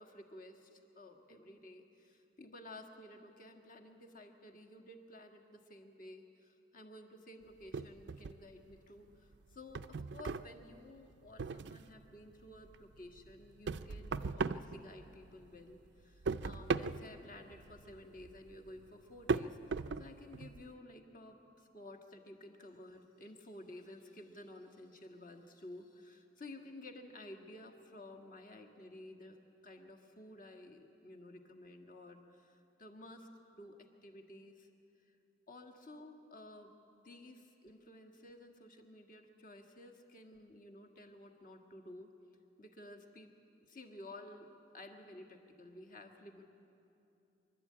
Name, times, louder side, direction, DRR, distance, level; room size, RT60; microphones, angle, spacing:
voice 1, 0.0-29.4 29.6-33.8 34.0-34.7 35.5-42.1 42.6-43.3 43.6-44.5 44.7-46.4, left 1 dB, 45° left, 2 dB, 1.6 m, -53 dB
sound 1, 7.7-8.8 9.1-12.0 12.4-15.4 15.7-20.7, right 4 dB, 60° right, 0.4 m, -39 dB
25.5 x 12.0 x 8.6 m, 2.8 s
head